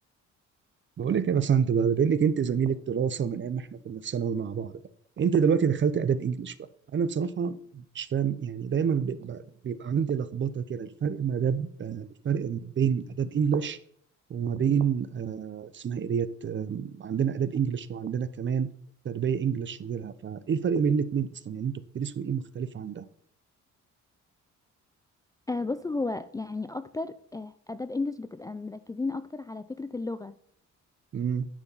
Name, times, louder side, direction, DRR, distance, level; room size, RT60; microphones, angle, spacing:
voice 1, 1.0-4.7 5.2-6.5 6.9-13.8 14.3-18.7 19.0-23.0 31.1-31.5, right 7 dB, 40° right, 14 dB, 0.6 m, -28 dB
voice 2, 25.5-30.3, left 3 dB, 10° left, 11 dB, 0.3 m, -33 dB
9.9 x 4.7 x 5.4 m, 0.65 s
cardioid pair, 90°, 30 cm